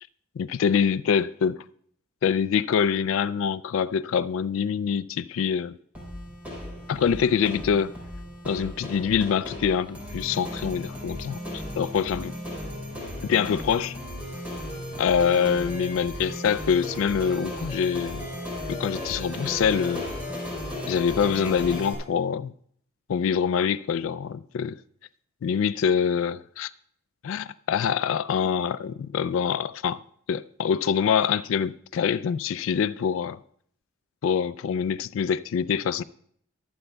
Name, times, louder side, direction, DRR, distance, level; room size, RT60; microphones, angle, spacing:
voice 1, 0.4-1.6 2.2-5.8 6.9-7.9 8.4-12.3 13.2-14.0 15.0-18.3 18.7-20.1 20.9-22.5 23.1-24.8 25.4-26.7 27.2-30.0 30.3-33.4 34.2-36.0, left 7 dB, 80° left, 0.3 m, -25 dB
sound 1, 5.9-21.9, left 1 dB, 10° right, 3.5 m, -35 dB
23.0 x 7.9 x 2.2 m
head